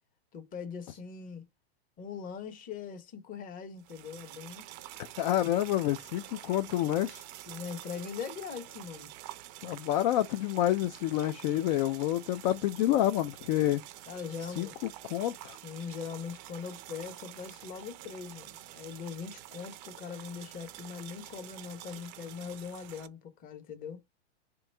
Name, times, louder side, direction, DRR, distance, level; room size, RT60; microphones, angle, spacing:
voice 1, 0.3-1.4 2.0-4.6 7.5-9.1 14.1-15.1 15.6-24.0, left 6 dB, 25° left, 0.9 m, -41 dB
sound 1, 3.8-23.1, right 15 dB, 40° right, 0.5 m, -48 dB
voice 2, 5.2-7.2 9.6-13.8 14.6-15.6, left 13 dB, 45° left, 0.4 m, -28 dB
3.5 x 3.0 x 3.2 m
hypercardioid pair, 135°, 33 cm